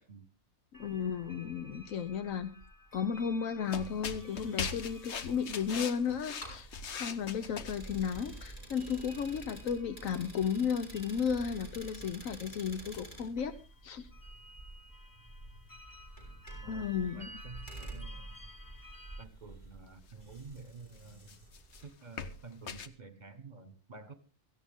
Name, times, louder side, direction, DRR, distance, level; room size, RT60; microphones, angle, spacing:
voice 1, 0.7-2.5 2.9-6.7 6.9-13.6 13.8-14.1 16.7-17.3, left 7 dB, 85° left, 11 dB, 1.3 m, -34 dB
sound 1, 0.7-19.2, equal, 15° left, 1.1 m, -56 dB
sound 2, 3.6-8.2 9.4-9.5 12.0-12.1 12.7-13.0 13.4-13.5 20.1-20.2 21.0-22.9, left 6 dB, 60° left, 1.2 m, -41 dB
sound 3, 4.2-21.9, right 2 dB, 35° left, 5.3 m, -49 dB
voice 2, 17.1-18.5 19.2-21.4 21.7-24.1, right 4 dB, 35° right, 10 dB, 1.4 m, -50 dB
17.0 x 14.5 x 3.7 m, 0.32 s
omnidirectional pair, 1.3 m